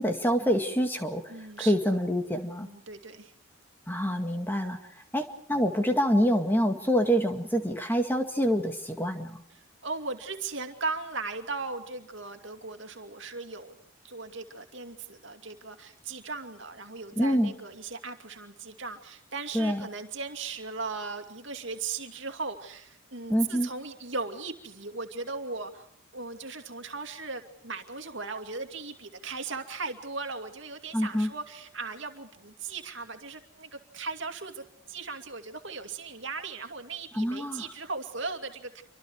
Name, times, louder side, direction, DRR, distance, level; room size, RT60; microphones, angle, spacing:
voice 1, 0.0-1.2 1.6-2.7 3.9-4.8 5.1-9.4 17.2-17.5 19.5-19.8 23.3-23.7 30.9-31.3 37.2-37.6, equal, 10° left, 5 dB, 2.0 m, -26 dB
voice 2, 1.3-2.0 2.6-3.3 9.5-13.8 14.0-25.9 26.1-38.8, right 4 dB, 60° right, 6 dB, 2.6 m, -38 dB
28.5 x 25.5 x 4.8 m, 0.68 s
head